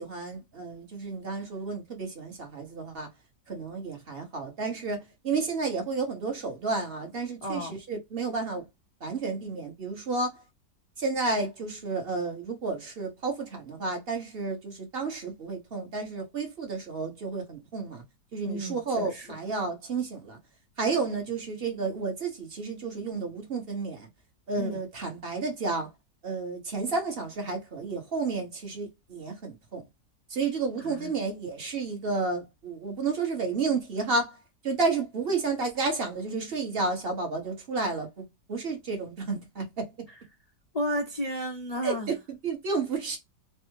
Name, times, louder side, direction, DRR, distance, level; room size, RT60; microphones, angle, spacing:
voice 1, 0.0-3.1 3.5-8.6 9.0-10.4 11.0-18.0 18.3-20.4 20.8-24.1 24.5-25.9 26.2-29.8 30.3-34.4 34.6-39.9 41.8-43.2, right 4 dB, 40° right, 1.0 m, -31 dB
voice 2, 7.4-7.7 18.5-19.3 24.6-24.8 30.8-31.1 40.7-42.1, equal, 65° left, 0.3 m, -32 dB
3.3 x 2.0 x 3.0 m
omnidirectional pair, 1.7 m